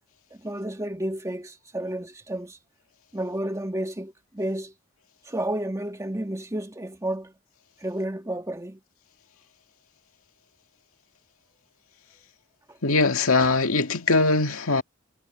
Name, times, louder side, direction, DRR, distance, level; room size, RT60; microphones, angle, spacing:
voice 1, 0.3-2.6 3.1-4.7 5.3-7.3 7.8-8.8 12.7-12.8, right 1 dB, 15° right, 1.7 m, -31 dB
voice 2, 12.8-14.8, left 3 dB, 85° left, 2.0 m, -21 dB
head